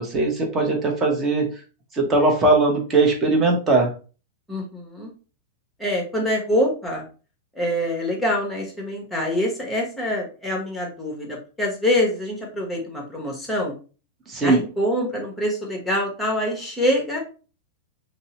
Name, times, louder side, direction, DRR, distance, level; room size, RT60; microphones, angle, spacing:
voice 1, 0.0-1.5 1.9-3.9 14.3-14.6, right 3 dB, 25° right, 2 dB, 0.9 m, -19 dB
voice 2, 4.5-5.1 5.8-7.0 7.5-13.7 14.4-17.2, left 1 dB, 5° left, -1 dB, 1.0 m, -25 dB
2.6 x 2.0 x 2.8 m, 0.36 s
hypercardioid pair, 120°, 0 cm